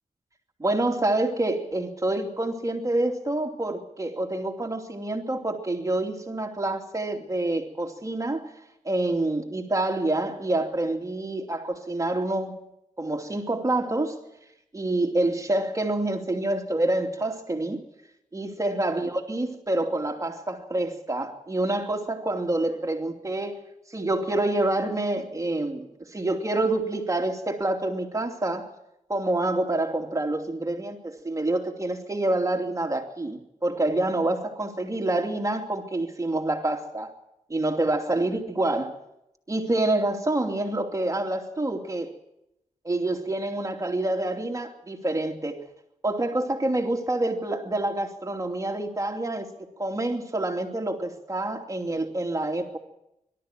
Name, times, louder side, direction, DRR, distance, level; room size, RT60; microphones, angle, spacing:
voice 1, 0.6-8.5 8.8-12.6 13.0-14.2 14.7-17.8 18.3-23.6 23.9-28.7 29.1-37.1 37.5-39.0 39.5-42.1 42.8-45.6 46.0-49.5 49.8-52.8, right 2 dB, 25° right, 4 dB, 2.8 m, -27 dB
24.0 x 13.0 x 9.1 m, 0.85 s
cardioid pair, 70°, 13 cm